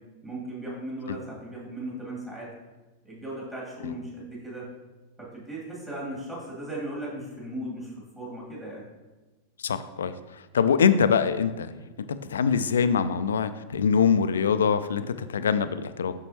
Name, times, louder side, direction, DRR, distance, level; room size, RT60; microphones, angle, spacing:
voice 1, 0.2-2.5 3.0-4.7 5.2-8.8, right 1 dB, 15° right, -6 dB, 2.2 m, -37 dB
voice 2, 9.6-10.1 10.5-11.7 12.0-16.1, left 6 dB, 65° left, 12 dB, 0.3 m, -24 dB
7.1 x 6.1 x 2.8 m, 1.2 s
figure-of-eight pair, 90°, 0 cm